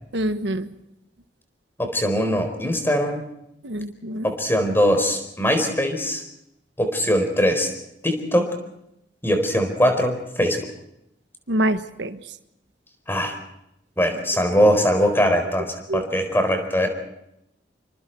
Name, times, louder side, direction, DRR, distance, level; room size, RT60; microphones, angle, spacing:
voice 1, 0.1-0.7 3.6-4.3 11.5-12.2 15.9-16.0, right 1 dB, 75° right, 10 dB, 1.4 m, -25 dB
voice 2, 1.8-3.2 4.2-6.2 6.8-7.7 8.0-8.5 9.2-10.6 13.1-13.4 14.0-16.9, equal, 10° left, 5 dB, 4.2 m, -21 dB
27.5 x 25.0 x 4.6 m, 0.82 s
head